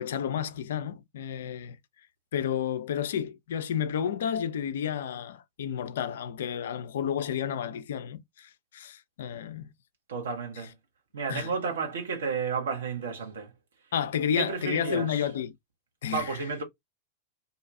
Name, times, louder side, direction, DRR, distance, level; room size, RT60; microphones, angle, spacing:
voice 1, 0.0-1.8 2.3-9.7 11.3-11.5 13.9-15.6 16.0-16.4, left 8 dB, 65° left, 0.3 m, -31 dB
voice 2, 10.1-10.7 11.1-13.5 14.4-15.3 16.1-16.6, right 5 dB, 70° right, 1.1 m, -32 dB
2.6 x 2.2 x 2.6 m
figure-of-eight pair, 90°, 0 cm